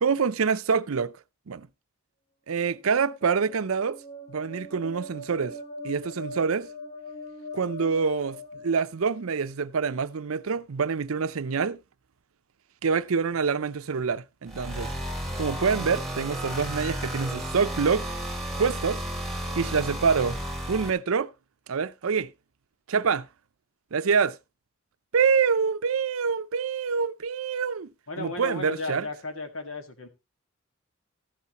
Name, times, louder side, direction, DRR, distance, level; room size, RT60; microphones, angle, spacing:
voice 1, 0.0-1.1 1.5-1.7 2.5-4.0 4.3-5.6 5.8-6.7 7.5-11.8 12.8-14.9 15.4-18.1 18.6-19.0 19.6-20.4 20.7-21.3 21.7-22.3 22.9-23.3 23.9-24.4 25.1-27.9 28.2-29.0, right 5 dB, 80° right, 0.6 m, -26 dB
sound 1, 2.7-9.4, left 1 dB, 30° left, 1.1 m, -42 dB
sound 2, 14.5-20.9, right 1 dB, ahead, 1.8 m, -33 dB
voice 2, 28.1-30.1, left 2 dB, 70° left, 1.9 m, -35 dB
14.0 x 8.3 x 3.0 m
head